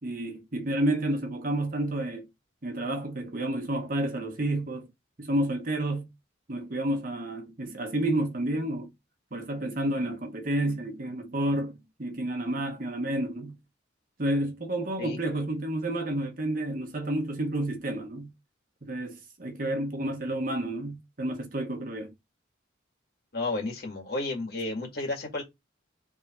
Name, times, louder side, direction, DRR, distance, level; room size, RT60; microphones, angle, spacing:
voice 1, 0.0-2.3 2.6-4.9 5.2-6.1 6.5-8.9 9.3-13.6 14.2-18.3 18.8-22.1, right 1 dB, 45° right, 1.0 m, -30 dB
voice 2, 23.3-25.4, left 2 dB, 50° left, 1.9 m, -32 dB
3.5 x 3.3 x 4.2 m
head